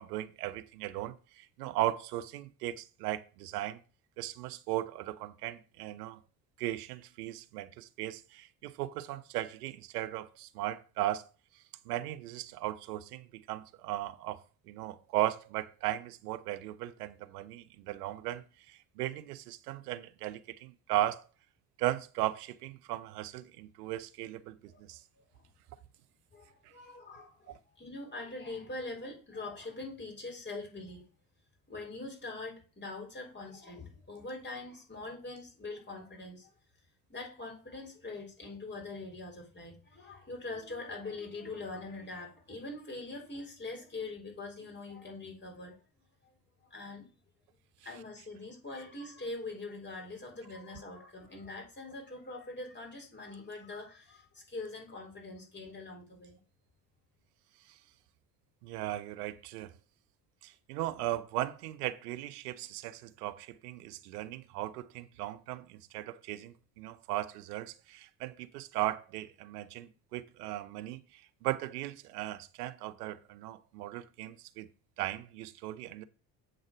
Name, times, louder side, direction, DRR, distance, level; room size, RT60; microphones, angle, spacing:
voice 1, 0.0-3.8 4.2-6.2 6.6-11.3 11.8-21.2 21.8-25.0 26.6-26.7 27.5-27.6 57.7-57.8 58.6-59.7 60.4-74.7 75.0-76.0, right 14 dB, 75° right, 0.8 m, -37 dB
voice 2, 24.7-25.5 26.3-31.0 31.7-36.5 37.1-45.8 46.2-46.3 46.6-47.1 47.8-56.4, left 2 dB, 25° left, 4.4 m, -43 dB
7.8 x 3.9 x 6.2 m
hypercardioid pair, 60°, 46 cm